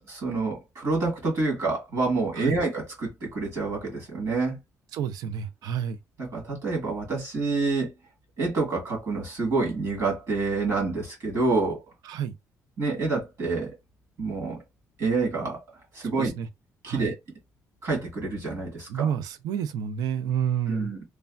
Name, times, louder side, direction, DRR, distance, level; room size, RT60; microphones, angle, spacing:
voice 1, 0.0-4.6 6.2-7.9 8.4-11.8 12.8-13.7 14.2-14.6 15.0-15.6 15.9-16.3 16.8-17.1 17.8-19.1 20.7-21.0, right 3 dB, 55° right, 1.7 m, -27 dB
voice 2, 4.9-6.0 12.0-12.4 16.1-16.5 16.8-17.1 18.9-20.9, right 8 dB, 90° right, 0.4 m, -29 dB
3.2 x 2.2 x 2.3 m
cardioid pair, 140°, 6 cm